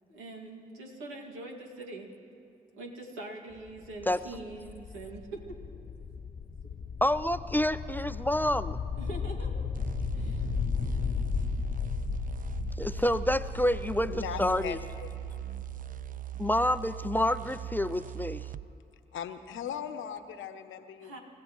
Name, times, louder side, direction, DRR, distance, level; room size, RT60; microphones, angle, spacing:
voice 1, 0.1-2.1 2.8-5.4 5.7-5.9 6.6-6.8 9.0-9.7 10.1-10.5 21.0-21.2, right 2 dB, 80° right, 0 dB, 2.3 m, -43 dB
sound 1, 3.5-17.2, left 6 dB, 45° left, 0.8 m, -35 dB
voice 2, 7.0-8.8 12.8-14.8 16.4-18.5, left 1 dB, 10° left, 12 dB, 0.5 m, -28 dB
sound 2, 9.7-18.7, right 14 dB, 40° right, 0.5 m, -40 dB
voice 3, 14.1-15.1 15.4-15.5 19.1-21.2, left 8 dB, 70° left, 10 dB, 0.9 m, -39 dB
29.0 x 15.0 x 3.1 m, 2.9 s
hypercardioid pair, 40°, 21 cm